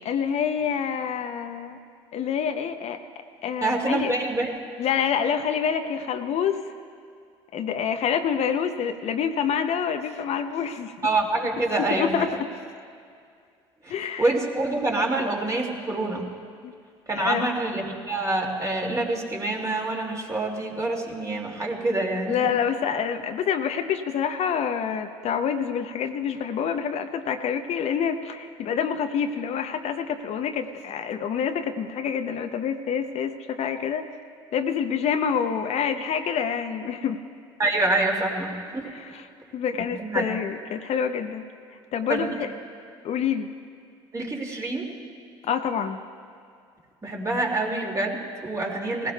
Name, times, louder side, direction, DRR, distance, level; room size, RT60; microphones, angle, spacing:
voice 1, 0.0-1.8 2.1-3.0 3.4-4.1 4.8-6.6 7.5-10.9 11.8-12.5 13.9-14.4 16.6-16.7 17.1-17.5 22.3-34.0 34.5-37.2 38.8-39.3 39.5-41.4 41.9-42.5 43.0-43.5 45.4-46.0, left 7 dB, 55° left, 7 dB, 0.7 m, -27 dB
voice 2, 3.6-4.5 11.0-12.3 13.8-16.3 17.1-22.5 37.6-38.8 40.0-40.3 42.1-42.4 44.1-44.9 47.0-49.1, right 2 dB, 25° right, 0 dB, 2.4 m, -26 dB
19.5 x 16.0 x 2.3 m, 2.2 s
hypercardioid pair, 65°, 14 cm